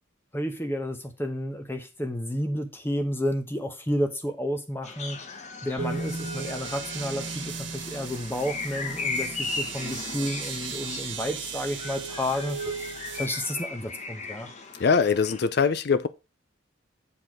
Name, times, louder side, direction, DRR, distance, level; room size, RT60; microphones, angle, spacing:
voice 1, 0.3-5.2 5.6-14.5, equal, 10° left, 0.9 m, -31 dB
sound 1, 4.8-15.4, left 4 dB, 35° left, 1.0 m, -37 dB
sound 2, 5.8-13.3, right 5 dB, 70° right, 1.3 m, -36 dB
voice 2, 14.8-16.1, left 5 dB, 55° left, 0.4 m, -22 dB
7.7 x 4.5 x 4.8 m
head